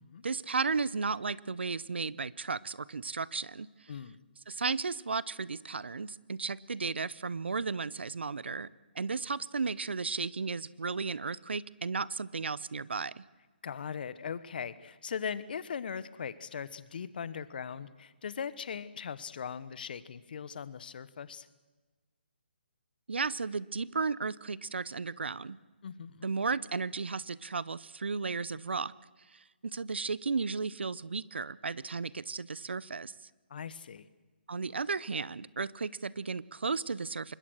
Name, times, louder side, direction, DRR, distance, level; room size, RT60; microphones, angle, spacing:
voice 1, 0.2-3.7 4.5-8.7 8.9-13.2 23.1-25.6 26.2-28.9 29.3-33.1 34.5-37.3, right 4 dB, 80° right, 22 dB, 0.8 m, -34 dB
voice 2, 13.6-21.5 25.8-26.3 33.5-34.1, left 7 dB, 55° left, 16 dB, 1.3 m, -39 dB
25.0 x 21.0 x 6.4 m, 1.2 s
hypercardioid pair, 150°, 6 cm